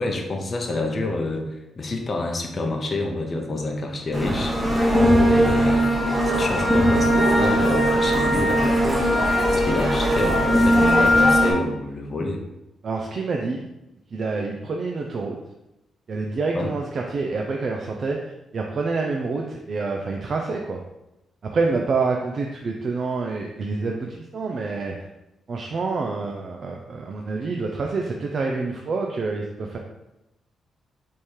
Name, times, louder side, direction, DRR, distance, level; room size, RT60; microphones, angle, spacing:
voice 1, 0.0-4.5 5.2-9.1 9.5-12.4 16.5-16.7, left 2 dB, 35° left, 2 dB, 0.6 m, -28 dB
sound 1, 4.1-11.5, equal, 5° right, 1.1 m, -19 dB
voice 2, 12.8-13.6 14.1-15.4 16.1-20.8 21.5-25.0 25.5-29.8, right 4 dB, 45° right, 1 dB, 0.4 m, -27 dB
3.5 x 3.2 x 4.3 m, 0.93 s
cardioid pair, 120°, 0 cm